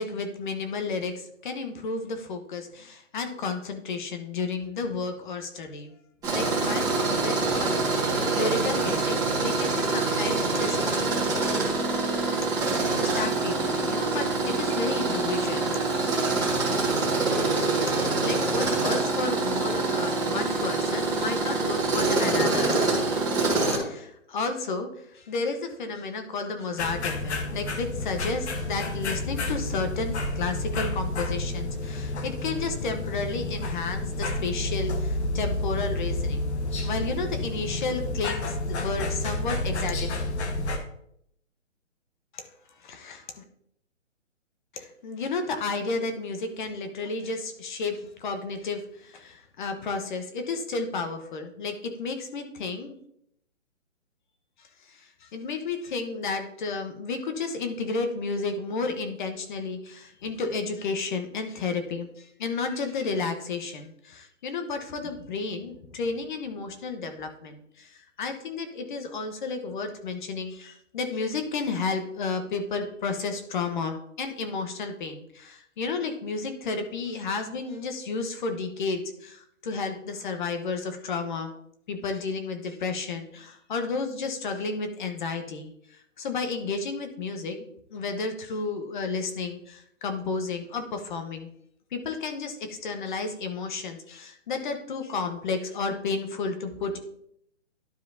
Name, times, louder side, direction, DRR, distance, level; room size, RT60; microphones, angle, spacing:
voice 1, 0.0-5.9 6.2-10.8 12.4-12.6 12.9-15.9 18.2-22.8 23.7-36.5 36.8-40.1 42.3-42.4 42.8-43.4 44.7-53.0 54.9-81.5 81.9-85.7 86.2-87.6 87.9-91.5 91.9-97.0, left 4 dB, 40° left, 7 dB, 1.1 m, -32 dB
Tools, 6.2-23.8, right 3 dB, 10° right, 1.8 m, -25 dB
sound 1, 26.8-40.8, left 2 dB, 60° left, 1.3 m, -30 dB
12.0 x 4.9 x 2.7 m, 0.72 s
hypercardioid pair, 150°, 38 cm